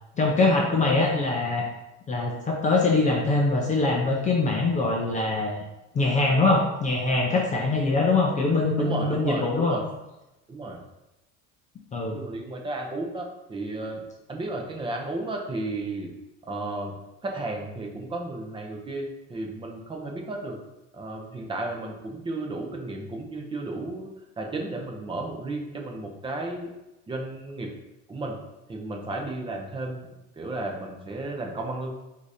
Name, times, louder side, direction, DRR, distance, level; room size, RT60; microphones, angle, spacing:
voice 1, 0.2-1.6 2.1-5.6 5.9-9.8 11.9-12.2, left 3 dB, 20° left, 0 dB, 0.5 m, -23 dB
voice 2, 8.8-9.8 10.5-10.8 12.1-14.0 14.3-16.1 16.4-16.9 17.2-20.6 20.9-24.1 24.4-26.7 27.1-27.7 28.1-28.4 28.7-30.1 30.4-31.9, right 2 dB, 15° right, 0 dB, 0.7 m, -33 dB
3.9 x 2.8 x 4.8 m, 0.97 s
cardioid pair, 145°, 34 cm